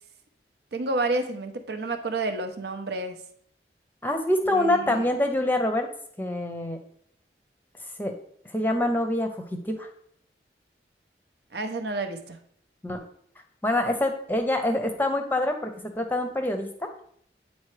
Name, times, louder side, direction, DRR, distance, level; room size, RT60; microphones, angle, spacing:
voice 1, 0.7-3.2 4.5-5.1 11.5-12.4, right 2 dB, 70° right, 7 dB, 0.7 m, -30 dB
voice 2, 4.0-5.9 6.2-6.8 8.0-8.1 8.5-9.9 12.8-13.1 13.6-16.7, left 1 dB, 10° left, 5 dB, 0.6 m, -25 dB
8.7 x 4.2 x 3.2 m, 0.66 s
head